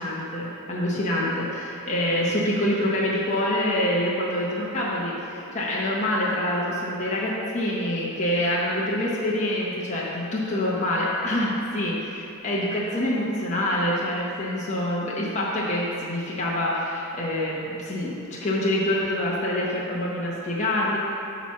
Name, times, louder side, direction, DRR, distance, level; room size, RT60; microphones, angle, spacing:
voice 1, 0.0-21.0, left 1 dB, 35° left, -5 dB, 0.9 m, -26 dB
8.7 x 3.1 x 5.8 m, 2.7 s
head